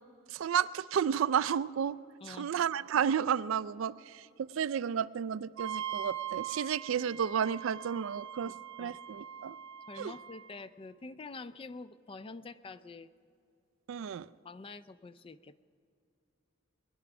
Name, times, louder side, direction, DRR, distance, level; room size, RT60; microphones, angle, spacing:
voice 1, 0.3-2.0 2.3-9.6 10.0-10.1 13.9-14.3, right 8 dB, 85° right, 16 dB, 0.4 m, -32 dB
voice 2, 2.2-2.5 8.4-9.0 9.9-13.1 14.4-15.6, left 3 dB, 30° left, 14 dB, 0.4 m, -47 dB
Wind instrument woodwind instrument, 5.6-10.5, right 9 dB, 70° right, 0.8 m, -41 dB
20.5 x 10.5 x 6.0 m, 2.5 s
head